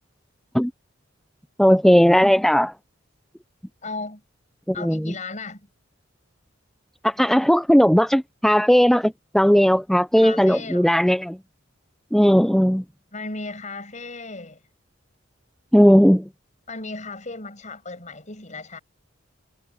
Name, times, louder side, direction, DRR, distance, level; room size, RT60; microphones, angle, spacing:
voice 1, 1.6-2.7 4.8-5.1 7.0-11.4 12.1-12.8 15.7-16.3, equal, ahead, 0.5 m, -17 dB
voice 2, 3.8-4.2 4.7-5.7 10.2-11.0 13.1-14.6 16.7-18.8, left 3 dB, 40° left, 6.4 m, -35 dB
head